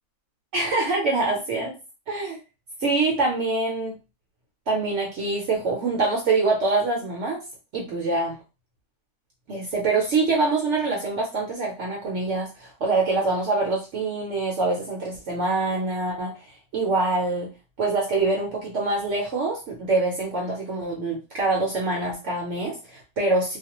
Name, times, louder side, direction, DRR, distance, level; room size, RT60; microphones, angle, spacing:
voice 1, 0.5-1.7 2.1-2.4 2.8-4.0 4.7-7.4 7.7-8.4 9.5-16.4 16.7-17.5 17.8-23.6, right 3 dB, 65° right, -1 dB, 0.9 m, -25 dB
2.4 x 2.2 x 2.8 m, 0.30 s
omnidirectional pair, 1.5 m